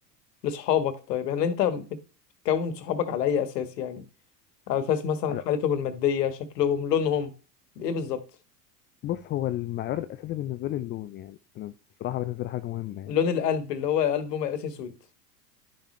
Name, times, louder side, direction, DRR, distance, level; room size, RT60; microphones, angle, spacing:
voice 1, 0.4-1.9 2.4-4.0 4.7-7.3 7.8-8.2 13.1-14.9, left 8 dB, 75° left, 1.5 m, -26 dB
voice 2, 9.0-13.2, left 14 dB, 25° left, 0.4 m, -32 dB
11.0 x 6.6 x 3.2 m
hypercardioid pair, 85°, 49 cm